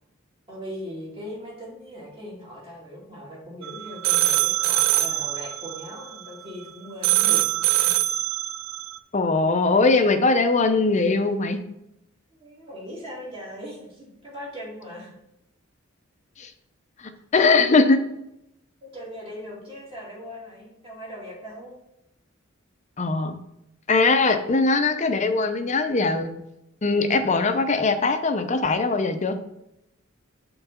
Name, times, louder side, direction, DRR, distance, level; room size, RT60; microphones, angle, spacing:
voice 1, 0.5-8.0 12.3-15.1 18.8-21.7, equal, 25° right, -4 dB, 2.3 m, -39 dB
sound 1, 3.6-6.7 7.0-9.0, right 13 dB, 75° right, 0.3 m, -23 dB
voice 2, 9.1-11.6 16.4-16.5 17.0-18.0 23.0-23.3 23.9-26.3 26.8-29.4, left 3 dB, 35° left, 7 dB, 0.6 m, -21 dB
5.8 x 3.9 x 5.7 m, 0.84 s
head